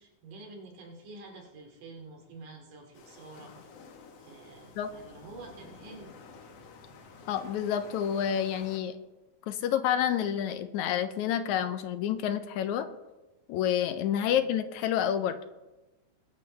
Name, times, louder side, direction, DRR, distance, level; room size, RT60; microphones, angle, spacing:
voice 1, 0.0-3.5 4.2-6.2 14.3-14.5, right 3 dB, 85° right, 0 dB, 4.1 m, -48 dB
sound 1, 2.9-8.8, left 4 dB, 60° left, 2.2 m, -51 dB
voice 2, 7.3-8.9 9.5-12.9 13.5-15.4, left 9 dB, 75° left, 10 dB, 2.0 m, -29 dB
22.0 x 10.5 x 3.3 m, 1.1 s
omnidirectional pair, 3.6 m